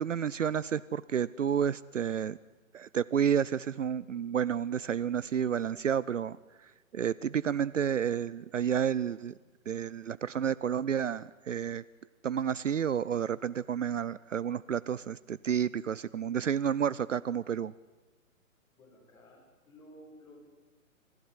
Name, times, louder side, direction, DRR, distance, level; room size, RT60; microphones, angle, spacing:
voice 1, 0.0-2.4 2.7-9.4 9.7-11.8 12.2-17.7, right 8 dB, 65° right, 18 dB, 0.7 m, -30 dB
voice 2, 18.7-20.4, equal, 10° left, -5 dB, 7.0 m, -54 dB
27.0 x 16.0 x 9.7 m, 1.2 s
figure-of-eight pair, 140°, 41 cm